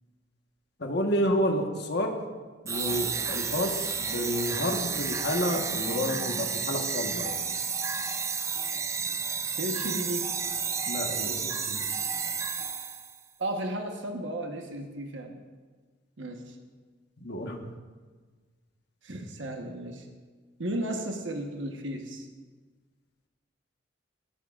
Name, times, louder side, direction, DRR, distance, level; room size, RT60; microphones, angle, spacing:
voice 1, 0.8-2.2 2.6-7.4 10.8-11.9 17.2-17.7, equal, 60° left, 2 dB, 1.3 m, -30 dB
sound 1, 2.7-13.2, right 5 dB, 15° right, 0.4 m, -31 dB
voice 2, 9.6-10.3 13.4-15.4 16.2-16.5 19.0-20.1 20.6-22.2, right 1 dB, 75° right, 3 dB, 1.2 m, -34 dB
19.5 x 13.0 x 2.5 m, 1.4 s
head